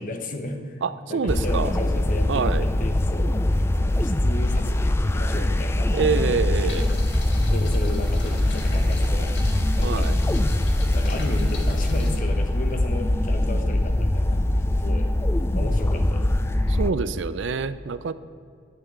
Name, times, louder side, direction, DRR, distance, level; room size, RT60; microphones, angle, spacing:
voice 1, 0.0-0.8 1.1-6.1 6.4-7.0 7.5-10.1 10.9-15.1 15.5-16.5, left 2 dB, 45° left, 6 dB, 1.1 m, -34 dB
voice 2, 0.8-1.7 2.3-2.7 5.9-6.9 9.8-10.2 16.7-18.1, right 5 dB, 75° right, 14 dB, 0.5 m, -26 dB
sound 1, 1.3-16.9, left 1 dB, 15° left, 0.3 m, -22 dB
sound 2, 6.7-12.2, left 1 dB, 65° left, 1.7 m, -33 dB
11.0 x 5.9 x 8.2 m, 2.3 s
head